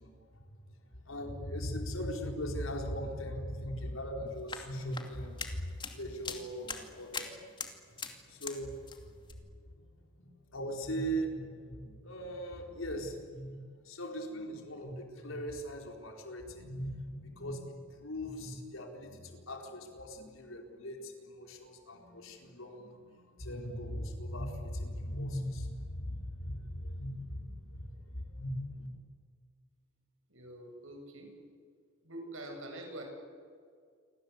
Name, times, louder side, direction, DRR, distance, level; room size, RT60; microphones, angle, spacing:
voice 1, 0.0-28.9, equal, 90° left, 3 dB, 4.6 m, -40 dB
sound 1, 4.3-8.6 8.9-9.3, left 5 dB, 25° left, 2.5 m, -43 dB
voice 2, 30.3-31.3 32.0-33.0, right 1 dB, 80° right, 3 dB, 7.6 m, -45 dB
29.0 x 24.5 x 8.3 m, 2.1 s
head